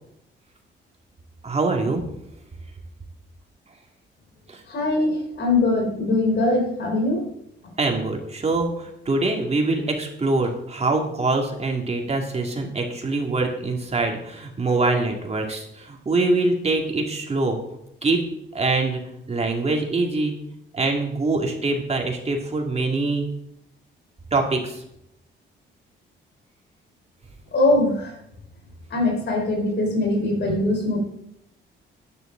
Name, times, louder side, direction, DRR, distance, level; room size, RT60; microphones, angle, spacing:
voice 1, 1.4-2.0 4.5-4.6 7.8-17.6 18.0-18.2 18.5-19.0 19.3-20.3 20.7-23.3 24.3-24.8, right 3 dB, 30° right, 2 dB, 2.4 m, -24 dB
voice 2, 4.7-7.3 27.5-28.2 28.9-31.0, left 2 dB, 60° left, 3 dB, 3.8 m, -22 dB
12.5 x 10.0 x 3.9 m, 0.78 s
cardioid pair, 90°, 20 cm